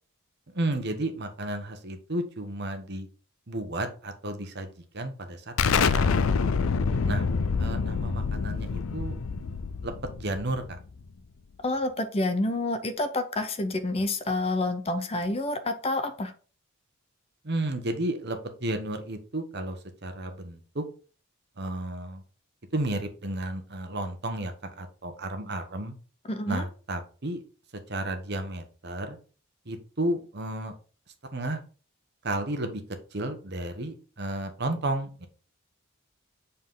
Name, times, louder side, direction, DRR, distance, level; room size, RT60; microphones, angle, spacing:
voice 1, 0.5-3.1 3.5-6.2 7.1-7.2 7.6-9.1 9.8-9.9 10.2-10.8 17.4-20.8 21.6-22.2 22.7-25.9 26.5-27.4 27.9-29.2 29.7-30.7 31.3-31.6 32.2-32.8 33.1-35.3, right 1 dB, 50° right, 7 dB, 1.1 m, -32 dB
Explosion, 5.6-11.0, left 5 dB, 70° left, 0.5 m, -26 dB
voice 2, 11.6-16.3 26.3-26.7, left 2 dB, 25° left, 9 dB, 0.6 m, -28 dB
7.3 x 4.2 x 3.8 m, 0.37 s
head